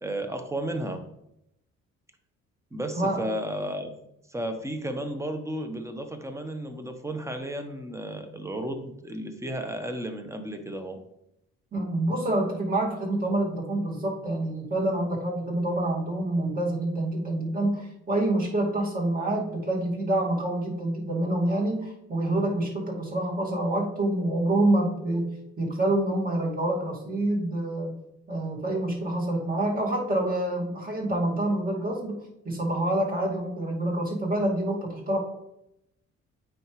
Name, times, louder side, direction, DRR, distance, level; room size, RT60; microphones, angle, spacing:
voice 1, 0.0-1.0 2.7-3.9 4.3-11.0, right 1 dB, 10° right, 6 dB, 1.0 m, -33 dB
voice 2, 2.9-3.3 11.7-28.0 28.3-35.2, right 1 dB, 30° right, -2 dB, 2.1 m, -27 dB
8.8 x 4.9 x 3.1 m, 0.83 s
cardioid pair, 90°, 30 cm